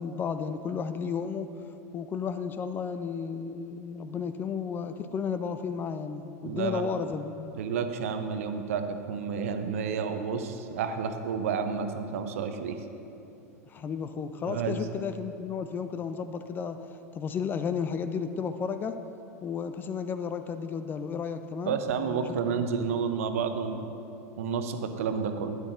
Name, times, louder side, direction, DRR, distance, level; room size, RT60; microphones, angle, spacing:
voice 1, 0.0-1.5 1.9-7.6 13.7-16.8 17.1-19.0 19.4-22.7, left 6 dB, 25° left, 10 dB, 0.4 m, -33 dB
voice 2, 6.4-6.9 7.6-12.8 14.5-14.8 21.6-23.9 24.4-25.6, right 6 dB, 60° right, 7 dB, 0.7 m, -30 dB
12.0 x 9.7 x 2.6 m, 2.8 s
figure-of-eight pair, 90°, 9 cm